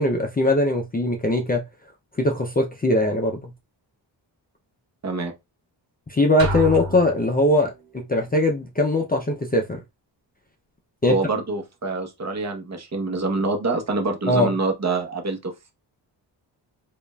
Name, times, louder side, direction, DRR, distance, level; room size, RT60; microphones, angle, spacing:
voice 1, 0.0-1.6 2.2-3.5 6.1-9.8 11.0-11.2 14.3-14.5, left 1 dB, 20° left, 0.5 m, -21 dB
sound 1, 6.4-7.9, equal, 75° right, 1.3 m, -29 dB
voice 2, 11.1-15.7, right 3 dB, 35° right, 0.9 m, -26 dB
5.1 x 2.5 x 2.3 m
wide cardioid pair, 130°, 45 cm